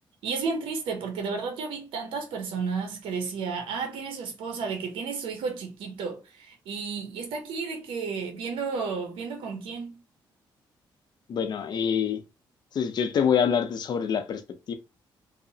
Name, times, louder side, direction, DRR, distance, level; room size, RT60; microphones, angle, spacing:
voice 1, 0.2-10.0, right 5 dB, 85° right, 0.6 m, -32 dB
voice 2, 11.3-12.2 12.7-14.4 14.7-14.8, left 7 dB, 55° left, 0.5 m, -25 dB
2.7 x 2.0 x 2.7 m
cardioid pair, 90°, 9 cm